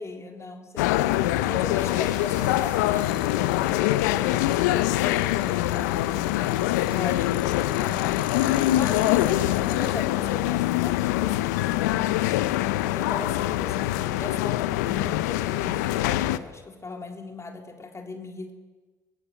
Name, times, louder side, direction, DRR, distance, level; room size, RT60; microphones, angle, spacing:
voice 1, 0.0-6.5 6.9-8.3 8.7-12.4 12.9-18.5, left 3 dB, 35° left, 2 dB, 3.8 m, -39 dB
sound 1, 0.8-16.4, left 15 dB, 80° left, 0.7 m, -24 dB
sound 2, 1.7-7.5, right 5 dB, 60° right, 4.9 m, -52 dB
sound 3, 3.0-9.9, left 10 dB, 65° left, 1.8 m, -44 dB
24.0 x 17.5 x 8.5 m, 1.3 s
hypercardioid pair, 45°, 9 cm